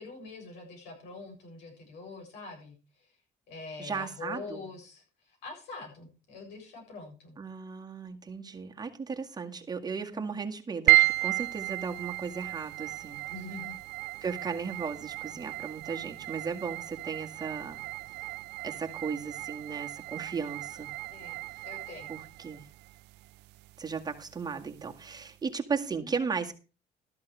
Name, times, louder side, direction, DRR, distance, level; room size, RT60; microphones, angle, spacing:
voice 1, 0.0-3.1 3.5-7.4 10.1-10.4 13.3-13.7 21.1-22.1 26.0-26.1, left 3 dB, 85° left, 3 dB, 7.6 m, -45 dB
voice 2, 3.8-4.6 7.4-13.2 14.2-17.8 18.2-18.3 18.6-20.9 22.1-22.6 23.8-26.5, right 5 dB, 25° right, 3 dB, 1.9 m, -36 dB
sound 1, 10.9-25.3, right 22 dB, 85° right, 0.5 m, -33 dB
13.0 x 11.0 x 3.4 m, 0.34 s
cardioid pair, 110°, 17 cm